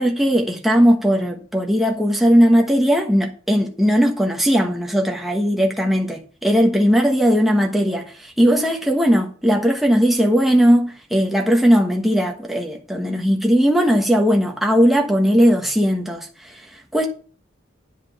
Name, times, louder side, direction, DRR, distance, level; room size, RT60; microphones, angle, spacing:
voice 1, 0.0-16.6 16.9-17.1, equal, ahead, 1.2 m, -18 dB
10.0 x 5.1 x 5.9 m
head